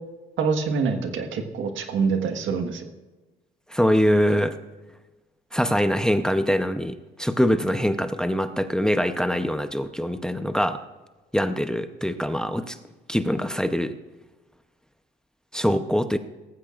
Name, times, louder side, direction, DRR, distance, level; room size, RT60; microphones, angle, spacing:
voice 1, 0.4-2.9, right 5 dB, 75° right, 5 dB, 1.6 m, -25 dB
voice 2, 3.7-4.6 5.5-10.8 11.3-12.8 13.1-13.9 15.5-16.2, equal, 5° left, 9 dB, 0.7 m, -23 dB
18.0 x 15.0 x 2.5 m, 1.2 s
cardioid pair, 90°, 20 cm